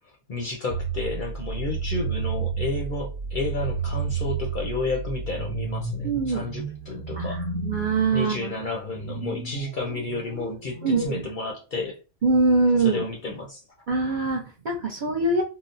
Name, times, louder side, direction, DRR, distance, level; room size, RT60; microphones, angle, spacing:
voice 1, 0.3-7.4 8.1-12.0 12.8-13.6, left 3 dB, 55° left, 0.6 m, -31 dB
sound 1, 0.7-11.1, right 4 dB, 10° right, 0.9 m, -32 dB
voice 2, 6.0-6.5 7.1-8.6 10.8-11.3 12.2-13.1 13.9-15.4, right 3 dB, 50° right, 0.6 m, -23 dB
3.8 x 2.0 x 2.5 m
omnidirectional pair, 1.3 m